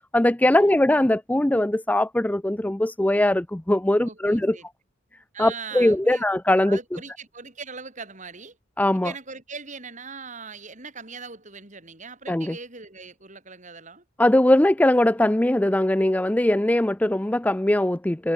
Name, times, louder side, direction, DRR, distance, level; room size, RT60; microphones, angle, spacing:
voice 1, 0.1-4.6 5.4-7.0 8.8-9.1 12.3-12.6 14.2-18.3, left 1 dB, 10° left, 0.5 m, -21 dB
voice 2, 4.0-4.7 5.3-6.3 6.6-8.6 9.0-14.0, right 5 dB, 40° right, 5.9 m, -40 dB
head